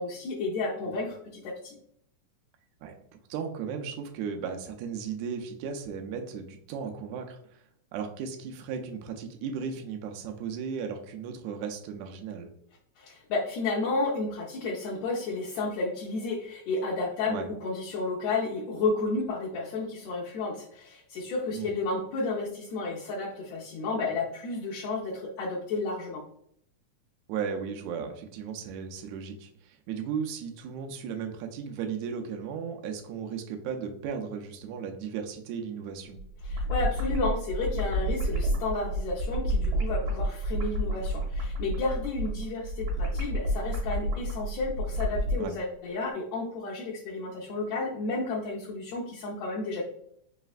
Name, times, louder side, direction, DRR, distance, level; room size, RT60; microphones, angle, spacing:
voice 1, 0.0-1.8 13.0-26.2 36.4-49.8, left 3 dB, 75° left, -4 dB, 1.6 m, -32 dB
voice 2, 3.3-7.6 7.9-12.5 17.3-17.5 21.5-21.7 27.3-36.2 45.4-45.6, right 6 dB, 80° right, 4 dB, 1.8 m, -36 dB
sound 1, 36.1-45.4, equal, 65° right, 1.6 m, -30 dB
4.8 x 3.2 x 2.4 m, 0.70 s
omnidirectional pair, 3.5 m